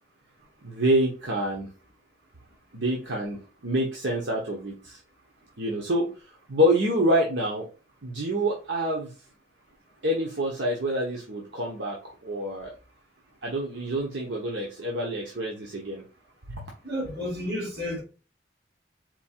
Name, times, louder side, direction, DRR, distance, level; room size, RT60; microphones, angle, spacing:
voice 1, 0.6-1.7 2.7-5.0 5.6-6.1 6.5-7.6 8.0-9.1 10.0-12.7 13.4-16.0 16.5-16.7, equal, 80° right, 1.0 m, -27 dB
voice 2, 16.8-18.0, left 1 dB, 60° right, 2.4 m, -31 dB
4.3 x 2.4 x 4.4 m
head